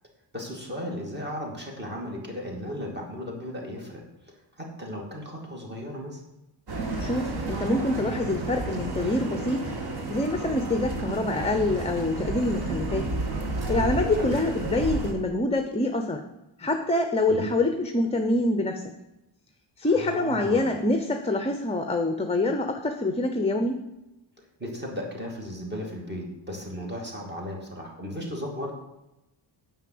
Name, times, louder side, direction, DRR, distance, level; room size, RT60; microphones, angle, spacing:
voice 1, 0.3-4.0 4.6-6.2 14.2-14.3 17.3-17.5 19.8-20.7 24.6-28.7, equal, 20° right, 0 dB, 2.6 m, -35 dB
sound 1, 6.7-15.1, right 2 dB, 55° right, 1.8 m, -31 dB
voice 2, 7.0-9.7 10.1-13.1 13.7-16.2 16.6-18.8 19.8-23.8, left 2 dB, 15° left, 6 dB, 0.6 m, -26 dB
9.6 x 5.6 x 7.7 m, 0.95 s
wide cardioid pair, 155°, 46 cm